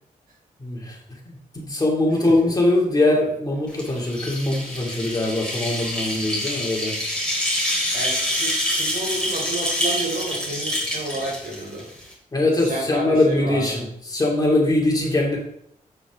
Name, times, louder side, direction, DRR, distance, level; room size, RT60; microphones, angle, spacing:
voice 1, 0.6-1.0 1.3-6.9 12.3-15.4, left 2 dB, 25° left, -2 dB, 2.7 m, -22 dB
sound 1, 3.7-12.1, left 1 dB, 5° left, 4.0 m, -26 dB
voice 2, 7.9-11.8 12.6-13.8, right 2 dB, 85° right, -2 dB, 4.3 m, -31 dB
8.8 x 8.2 x 3.7 m, 0.71 s
wide cardioid pair, 115°, 14 cm